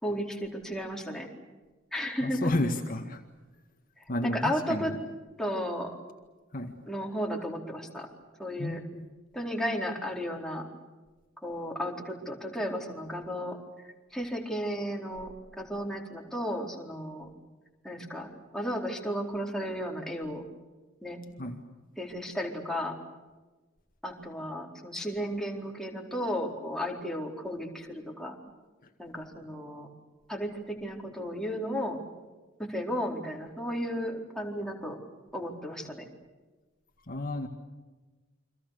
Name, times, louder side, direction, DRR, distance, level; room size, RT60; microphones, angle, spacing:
voice 1, 0.0-1.3 1.9-2.5 4.2-4.9 5.4-5.9 6.9-8.1 8.4-8.8 9.3-10.7 11.4-17.3 17.8-18.3 18.5-20.4 21.0-21.2 22.0-23.0 24.0-28.4 29.0-29.9 30.3-32.0 32.6-35.0 35.3-36.1, equal, 5° left, 0 dB, 4.3 m, -34 dB
voice 2, 2.2-3.2 4.1-5.0 6.5-6.8 8.6-9.1 21.4-21.6 28.8-28.9 35.8-35.9 37.1-37.5, left 1 dB, 45° left, 4 dB, 1.9 m, -32 dB
29.5 x 25.5 x 6.8 m, 1.2 s
head